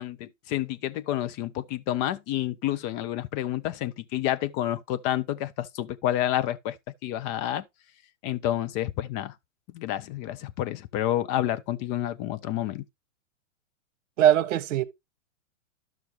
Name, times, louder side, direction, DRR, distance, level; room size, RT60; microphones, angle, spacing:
voice 1, 0.0-6.8 7.0-7.6 8.2-9.3 9.7-12.8, left 13 dB, 25° left, 0.6 m, -29 dB
voice 2, 14.2-14.8, right 11 dB, 65° right, 1.2 m, -21 dB
13.0 x 6.0 x 2.9 m
hypercardioid pair, 135°, 40 cm